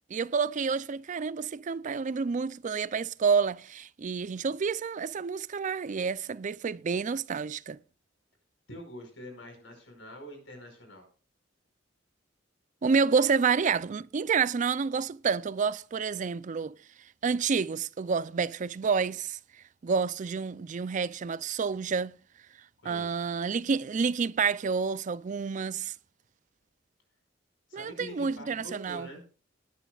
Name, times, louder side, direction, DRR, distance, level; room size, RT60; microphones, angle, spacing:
voice 1, 0.1-7.8 12.8-16.7 17.2-19.4 19.8-22.1 22.9-25.9 27.7-29.1, right 5 dB, 40° right, 0.4 m, -29 dB
voice 2, 8.7-11.0 22.8-23.2 27.7-29.2, equal, 85° left, 5.1 m, -45 dB
20.0 x 10.0 x 2.4 m
head